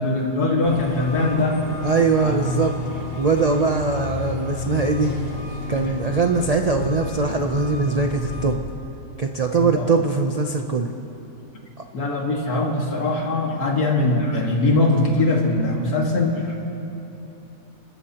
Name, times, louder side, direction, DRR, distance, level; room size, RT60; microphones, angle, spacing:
voice 1, 0.0-1.6 2.2-2.6 9.6-9.9 11.9-16.6, left 2 dB, 85° left, 0 dB, 2.4 m, -21 dB
sound 1, 0.6-8.6, left 4 dB, 40° left, 1.2 m, -31 dB
voice 2, 1.8-2.7 3.2-5.1 5.7-8.6 9.2-10.9, right 4 dB, 70° right, 4 dB, 0.3 m, -21 dB
29.0 x 14.0 x 2.9 m, 2.9 s
omnidirectional pair, 1.6 m